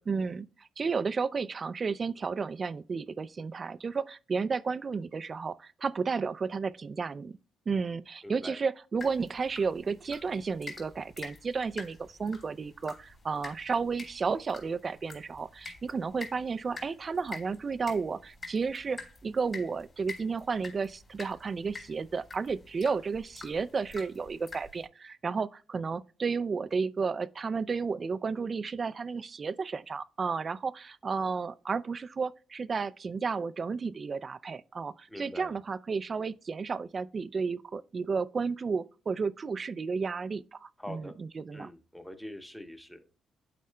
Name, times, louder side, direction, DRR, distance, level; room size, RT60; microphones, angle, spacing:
voice 1, 0.1-7.4 7.7-41.7, right 5 dB, 40° right, 0.3 m, -32 dB
voice 2, 8.2-8.6 35.1-35.5 40.8-41.1 41.5-43.1, left 1 dB, 5° left, 0.9 m, -44 dB
sound 1, 9.0-24.9, left 3 dB, 40° left, 3.0 m, -48 dB
12.0 x 4.3 x 2.2 m
cardioid pair, 90°, 0 cm